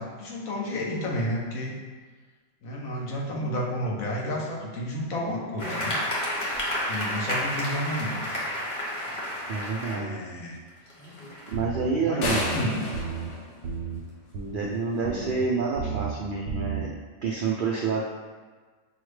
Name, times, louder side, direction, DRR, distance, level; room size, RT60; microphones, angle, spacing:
voice 1, 0.0-1.7 2.6-6.0 6.9-8.2 9.9-10.6 12.0-12.8, equal, 80° left, -3 dB, 1.2 m, -31 dB
sound 1, 5.6-9.9 10.7-11.5, equal, 25° left, 0.9 m, -31 dB
voice 2, 9.5-10.2 11.5-12.4 14.5-18.0, right 4 dB, 85° right, -3 dB, 0.4 m, -28 dB
sound 2, 11.5-11.9 12.2-12.6 12.9-13.3 13.6-14.0 14.3-14.7 15.0-15.4 15.7-16.1 16.5-16.8, right 6 dB, 65° right, 0.8 m, -33 dB
sound 3, 12.2-14.4, left 2 dB, 60° left, 1.0 m, -31 dB
6.3 x 2.1 x 3.1 m, 1.4 s
omnidirectional pair, 1.5 m